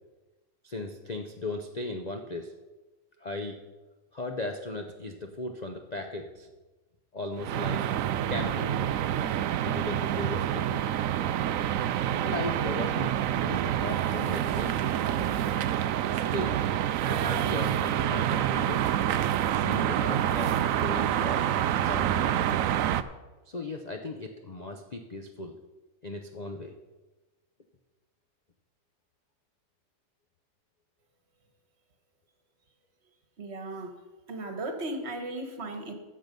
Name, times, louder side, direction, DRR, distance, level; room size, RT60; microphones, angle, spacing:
voice 1, 0.6-2.5 3.2-3.6 4.1-6.5 7.1-7.8 8.3-8.7 9.6-10.8 12.2-13.1 13.4-15.4 16.1-16.6 17.0-18.9 19.5-21.5 21.8-22.6 23.5-25.6 26.0-26.7, left 2 dB, 85° left, 4 dB, 0.3 m, -37 dB
sound 1, 7.4-23.0, right 11 dB, 80° right, 0.7 m, -27 dB
voice 2, 33.4-33.9 34.3-35.9, right 2 dB, 40° right, 6 dB, 1.5 m, -36 dB
14.0 x 7.9 x 5.3 m, 1.2 s
omnidirectional pair, 1.9 m